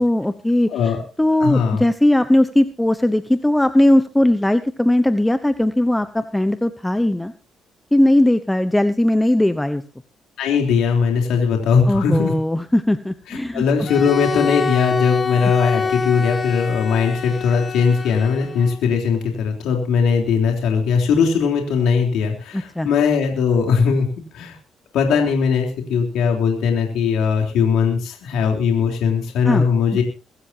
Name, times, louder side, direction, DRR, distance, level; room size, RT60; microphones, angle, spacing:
voice 1, 0.0-7.3 7.9-9.8 11.9-13.6 22.5-22.9 29.4-29.7, left 1 dB, 10° left, 11 dB, 1.0 m, -18 dB
voice 2, 1.4-1.8 10.4-12.3 13.3-24.1 24.3-24.6 24.9-30.0, left 6 dB, 85° left, 2 dB, 3.5 m, -19 dB
Bowed string instrument, 13.8-18.8, left 5 dB, 40° left, 1.6 m, -25 dB
24.0 x 12.5 x 2.8 m, 0.32 s
cardioid pair, 90°, 0 cm